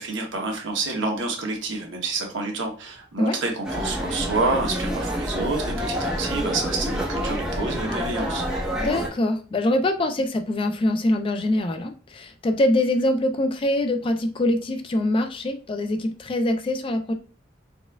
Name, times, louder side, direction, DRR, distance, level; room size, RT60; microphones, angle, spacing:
voice 1, 0.0-8.4, right 3 dB, 85° right, 1 dB, 0.9 m, -28 dB
sound 1, 3.6-9.1, equal, 5° right, 0.8 m, -28 dB
voice 2, 8.7-17.1, left 1 dB, 30° left, 7 dB, 0.3 m, -24 dB
4.1 x 2.3 x 2.3 m, 0.38 s
head